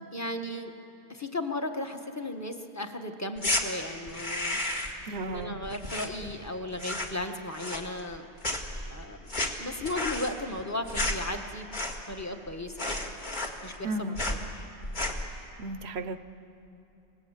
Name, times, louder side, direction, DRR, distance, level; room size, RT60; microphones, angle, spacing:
voice 1, 0.1-0.7 1.1-4.6 5.2-8.3 8.9-9.3 9.6-11.7 12.1-13.1 13.6-14.4, left 1 dB, 15° left, 5 dB, 1.3 m, -35 dB
sound 1, 3.4-3.6 4.1-5.0 5.3-6.5 6.7-7.2 7.5-8.2 8.4-12.2 12.5-12.6 12.8-13.9 14.2-14.4 14.8-15.3, left 1 dB, 40° left, 2.1 m, -32 dB
voice 2, 5.1-5.6 13.8-14.2 15.6-16.2, right 2 dB, 65° right, 11 dB, 1.0 m, -34 dB
27.0 x 18.5 x 8.2 m, 3.0 s
omnidirectional pair, 1.2 m